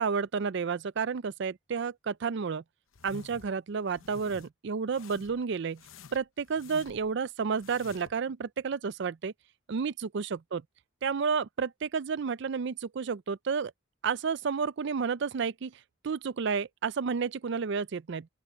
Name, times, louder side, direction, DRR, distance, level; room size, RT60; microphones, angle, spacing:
voice 1, 0.0-2.6 3.0-5.8 6.1-9.3 9.7-10.6 11.0-13.7 14.0-15.7 16.0-18.3, right 5 dB, 60° right, 0.4 m, -31 dB
sound 1, 2.9-3.5 3.9-4.5 4.9-5.4 5.8-7.1 7.5-8.2, left 5 dB, 80° left, 0.8 m, -50 dB
open air
head